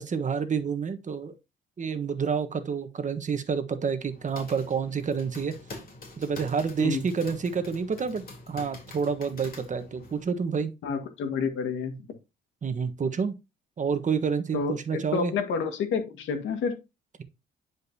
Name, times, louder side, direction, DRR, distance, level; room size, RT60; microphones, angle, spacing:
voice 1, 0.0-1.3 1.8-5.5 6.2-10.7 12.6-13.3 13.8-15.3, right 6 dB, 40° right, 1.3 m, -29 dB
sound 1, 4.0-10.2, left 2 dB, 45° left, 3.5 m, -45 dB
voice 2, 10.8-12.1 14.5-16.8, left 5 dB, 80° left, 1.8 m, -29 dB
10.0 x 5.2 x 2.8 m
cardioid pair, 90°, 20 cm